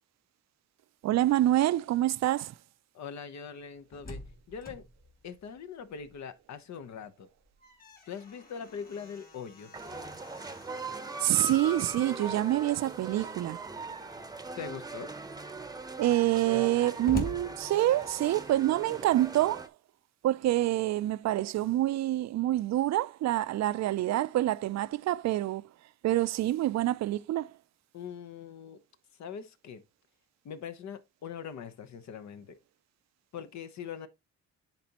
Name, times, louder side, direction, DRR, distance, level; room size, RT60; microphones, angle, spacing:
voice 1, 1.0-2.5 11.2-13.6 16.0-19.7 20.2-25.7 26.0-27.5, right 14 dB, 65° right, 0.4 m, -27 dB
voice 2, 2.9-4.2 4.5-4.8 5.2-7.3 8.1-9.7 14.6-15.1 27.9-28.8 29.1-29.8 30.4-32.6 33.3-34.1, left 7 dB, 65° left, 1.0 m, -42 dB
Slam, 3.8-6.4 6.8-6.9 7.3-13.0 13.8-14.4 14.9-15.0 15.2-18.4, left 1 dB, 30° left, 2.5 m, -45 dB
sound 1, 9.7-19.7, right 3 dB, 15° right, 0.8 m, -40 dB
10.0 x 4.2 x 2.9 m
cardioid pair, 90°, 30 cm